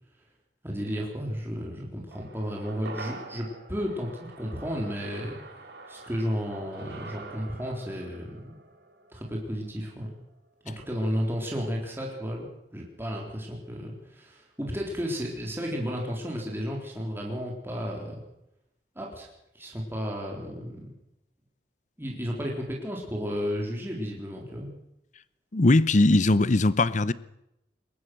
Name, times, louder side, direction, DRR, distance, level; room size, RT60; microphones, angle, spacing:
voice 1, 0.6-5.4 5.9-8.5 9.1-10.2 10.6-18.2 19.0-19.3 19.5-20.9 22.0-24.7, equal, 15° right, 3.8 m, -33 dB
sound 1, 2.1-10.6 10.9-11.0, right 3 dB, 70° right, 3.7 m, -46 dB
voice 2, 25.5-27.1, left 2 dB, 45° left, 0.8 m, -20 dB
22.0 x 19.0 x 6.4 m
head